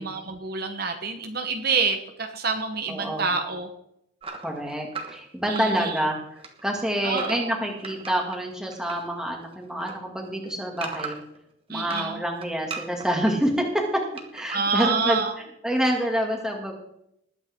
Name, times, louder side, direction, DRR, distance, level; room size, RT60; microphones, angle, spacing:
voice 1, 0.0-3.7 5.5-5.9 7.0-7.5 11.7-12.2 14.5-15.3, right 4 dB, 50° right, 5 dB, 1.0 m, -27 dB
voice 2, 2.9-3.3 4.4-11.2 11.7-14.0 14.3-16.7, equal, 5° right, 0 dB, 2.2 m, -27 dB
sound 1, 4.2-6.1 6.4-9.1 9.4-11.4 11.8-13.3 14.2-14.7, right 4 dB, 25° right, 1.4 m, -37 dB
20.0 x 8.9 x 3.7 m, 0.75 s
head